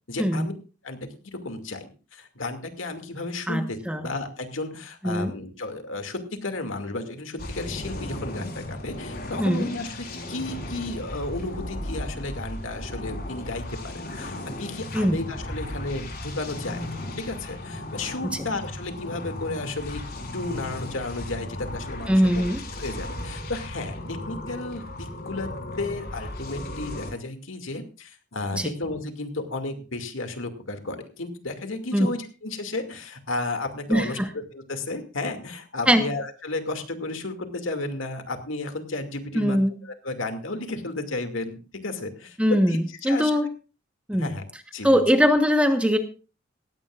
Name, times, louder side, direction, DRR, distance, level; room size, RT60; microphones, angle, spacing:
voice 1, 0.1-0.5 0.8-16.9 17.2-20.0 20.3-22.5 22.8-25.5 25.8-43.3 44.1-44.5 44.7-45.0, left 2 dB, 80° left, 6 dB, 2.4 m, -33 dB
voice 2, 3.5-4.1 5.0-5.3 9.4-9.7 14.9-15.2 18.2-18.4 22.1-22.6 28.5-28.7 31.9-32.1 33.9-34.3 35.9-36.1 39.3-39.7 42.4-43.5 44.1-44.3 44.8-46.0, equal, 5° right, 7 dB, 1.2 m, -21 dB
sound 1, 7.4-27.1, left 1 dB, 50° left, 3.9 m, -36 dB
18.0 x 16.0 x 2.5 m, 0.34 s
head